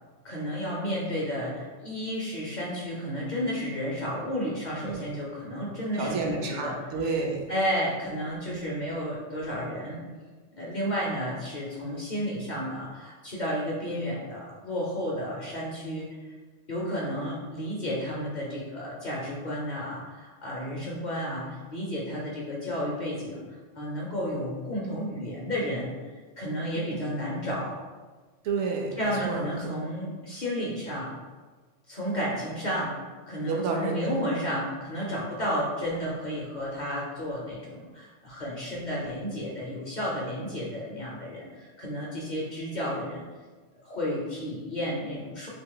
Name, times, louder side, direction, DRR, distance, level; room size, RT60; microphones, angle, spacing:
voice 1, 0.2-6.7 7.5-10.0 10.6-16.3 16.7-23.4 23.8-27.8 29.0-31.1 31.9-33.0 33.3-43.2 43.8-45.5, equal, 45° left, -5 dB, 0.6 m, -32 dB
voice 2, 5.9-7.4 26.7-27.1 28.4-29.7 33.5-34.0, right 4 dB, 70° right, 1 dB, 0.9 m, -30 dB
2.9 x 2.8 x 3.7 m, 1.4 s
omnidirectional pair, 1.3 m